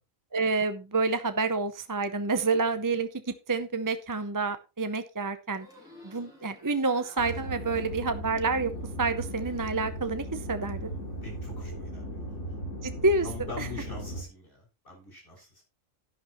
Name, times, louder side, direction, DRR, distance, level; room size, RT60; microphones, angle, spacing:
voice 1, 0.3-5.7 6.0-8.7 9.0-10.9 12.8-13.3 13.6-13.7, right 3 dB, 20° right, 9 dB, 0.6 m, -28 dB
sound 1, 5.5-9.9 10.2-11.0, left 1 dB, 5° right, 5.0 m, -55 dB
sound 2, 7.2-14.2, right 1 dB, 70° left, 3.0 m, -37 dB
voice 2, 11.1-12.3 13.2-15.6, left 3 dB, 45° left, -1 dB, 6.7 m, -43 dB
11.0 x 11.0 x 3.1 m, 0.28 s
omnidirectional pair, 1.3 m